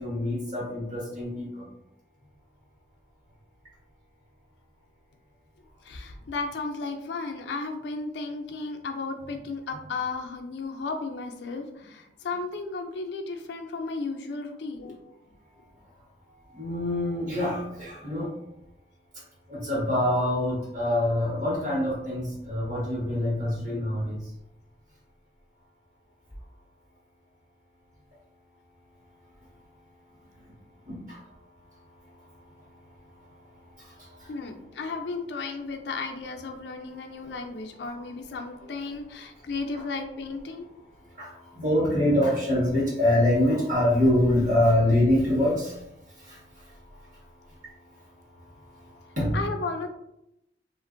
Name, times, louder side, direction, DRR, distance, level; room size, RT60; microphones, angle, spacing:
voice 1, 0.0-1.6 16.5-18.3 19.5-24.2 30.9-31.2 33.8-34.3 37.8-38.1 41.2-45.8 46.1-46.7 49.1-49.4, left 1 dB, 45° right, -6 dB, 1.2 m, -25 dB
voice 2, 5.8-15.2 34.3-40.7 49.3-49.9, left 3 dB, 80° left, 5 dB, 0.4 m, -34 dB
2.9 x 2.5 x 2.5 m, 0.83 s
head